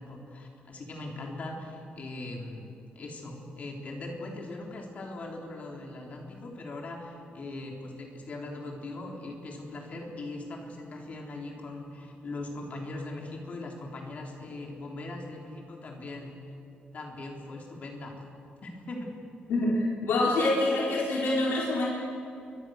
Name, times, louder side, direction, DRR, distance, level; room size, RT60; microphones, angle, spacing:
voice 1, 0.0-16.4 16.9-18.2 18.6-19.2, left 2 dB, 45° left, 1 dB, 3.9 m, -40 dB
voice 2, 19.5-21.9, left 2 dB, 85° left, -4 dB, 3.9 m, -26 dB
29.0 x 24.0 x 6.7 m, 2.6 s
wide cardioid pair, 170°, 4 cm